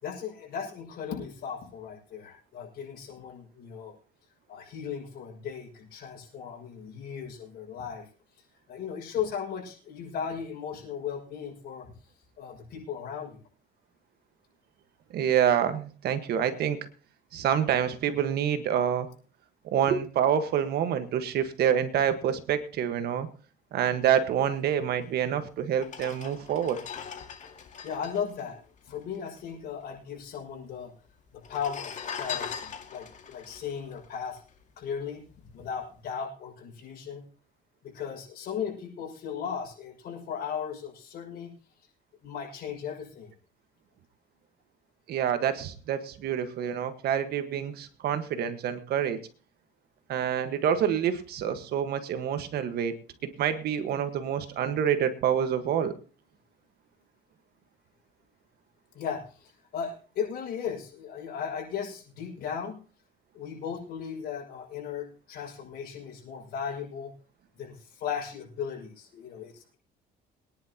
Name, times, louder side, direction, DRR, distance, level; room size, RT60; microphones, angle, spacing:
voice 1, 0.0-4.0 4.5-8.1 8.7-11.9 12.4-13.4 27.8-30.9 31.3-34.4 34.8-35.2 35.5-37.2 37.8-41.5 42.2-43.3 58.9-62.8 63.3-67.1 67.6-69.7, left 7 dB, 65° left, 0 dB, 6.1 m, -36 dB
voice 2, 15.1-16.8 17.3-19.1 19.6-23.3 23.7-26.8 45.1-49.2 50.1-53.0 53.2-56.0, right 9 dB, 70° right, 9 dB, 1.5 m, -27 dB
sound 1, 25.1-25.2 25.7-29.4 29.7-29.8 30.0-30.7 31.3-34.8 35.3-35.5, left 7 dB, 45° left, 2.1 m, -40 dB
23.5 x 10.5 x 2.9 m, 0.38 s
cardioid pair, 110°, 17 cm